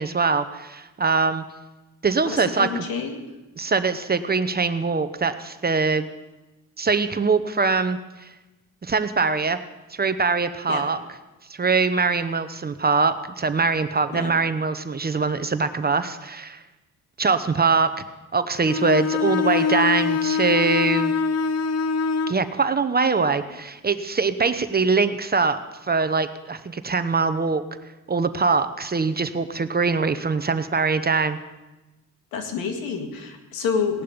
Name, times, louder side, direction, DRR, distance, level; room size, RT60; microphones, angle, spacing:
voice 1, 0.0-1.4 2.0-2.8 3.6-6.1 6.8-8.3 8.8-9.6 9.9-11.0 11.5-16.6 17.2-17.9 18.3-21.1 22.3-27.6 28.1-31.4, right 4 dB, 25° right, 10 dB, 0.9 m, -23 dB
voice 2, 2.2-3.2 10.7-10.8 14.1-14.3 32.3-34.0, left 5 dB, 90° left, 5 dB, 2.0 m, -28 dB
Bowed string instrument, 18.6-22.4, left 6 dB, 45° left, 0.7 m, -23 dB
17.5 x 11.0 x 5.2 m, 1.1 s
cardioid pair, 75°, 34 cm